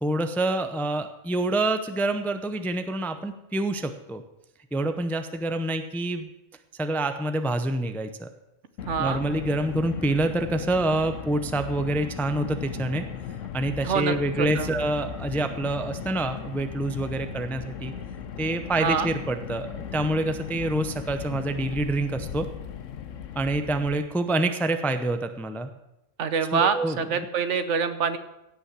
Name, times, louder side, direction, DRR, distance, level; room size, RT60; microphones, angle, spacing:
voice 1, 0.0-4.2 4.7-6.3 6.8-8.3 9.0-13.1 13.5-17.9 18.4-19.7 19.9-22.5 23.4-25.7 26.5-27.3, right 2 dB, ahead, 8 dB, 0.4 m, -27 dB
Car, 8.8-24.0, left 8 dB, 90° left, 1.1 m, -37 dB
voice 2, 8.9-9.2 13.8-14.1 14.6-14.7 18.8-19.1 26.2-28.2, right 6 dB, 70° right, 11 dB, 1.2 m, -25 dB
16.5 x 5.8 x 7.4 m, 0.92 s
omnidirectional pair, 1.3 m